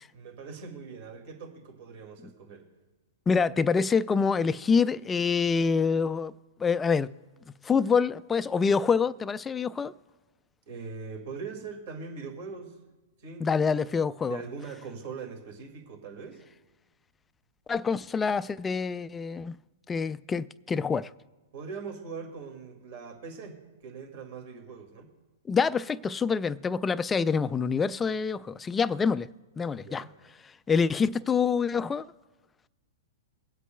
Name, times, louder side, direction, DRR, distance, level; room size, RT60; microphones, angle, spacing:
voice 1, 0.1-2.7 10.7-12.8 13.2-13.8 14.3-16.4 21.5-25.1 29.7-30.1, right 5 dB, 55° right, 2.0 m, -41 dB
voice 2, 3.3-6.3 6.6-7.1 7.6-9.9 13.4-14.4 17.7-19.6 19.9-21.1 25.5-29.3 29.6-30.1 30.4-32.1, left 5 dB, 15° left, 0.3 m, -26 dB
23.5 x 8.1 x 2.2 m
hypercardioid pair, 120°, 0 cm